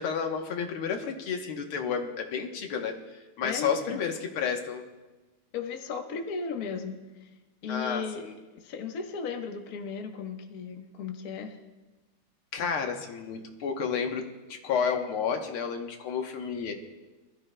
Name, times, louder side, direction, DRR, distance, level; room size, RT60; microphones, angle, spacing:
voice 1, 0.0-4.8 7.7-8.3 12.5-14.3 14.6-16.7, left 6 dB, 85° left, 4 dB, 2.0 m, -31 dB
voice 2, 3.4-4.0 5.5-7.3 7.6-8.3 8.6-11.6, left 5 dB, 50° left, 3 dB, 1.4 m, -36 dB
25.0 x 13.5 x 2.2 m, 1.2 s
omnidirectional pair, 2.3 m